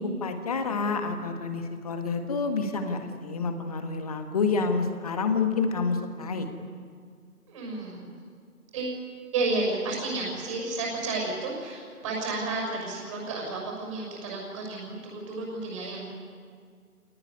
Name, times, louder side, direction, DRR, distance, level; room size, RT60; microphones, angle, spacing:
voice 1, 0.0-6.5, left 4 dB, 25° left, 6 dB, 1.7 m, -28 dB
voice 2, 7.5-8.1 8.7-9.0 9.3-16.1, right 3 dB, 20° right, -1 dB, 6.6 m, -32 dB
25.5 x 19.5 x 9.7 m, 2.1 s
figure-of-eight pair, 150°, 45 cm